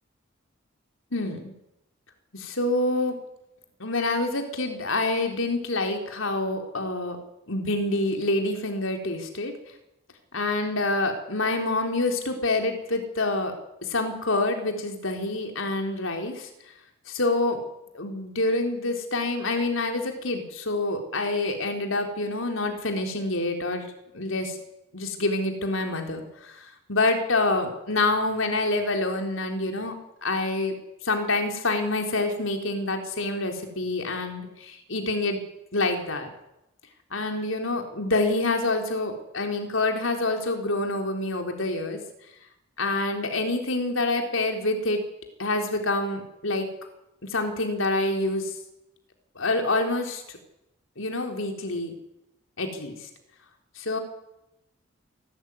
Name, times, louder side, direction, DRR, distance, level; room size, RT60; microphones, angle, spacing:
voice 1, 1.1-1.5 2.3-3.2 3.8-7.2 7.5-9.5 10.3-13.5 13.8-16.5 17.1-17.6 17.9-23.9 24.1-24.6 24.9-30.0 30.2-30.7 31.0-35.4 35.7-36.3 37.1-42.0 42.8-45.0 45.4-46.7 47.3-48.5 49.4-50.4 51.0-51.9 52.6-53.1 53.8-54.0, left 2 dB, 75° left, 4 dB, 3.9 m, -27 dB
28.5 x 13.0 x 9.7 m, 0.89 s
head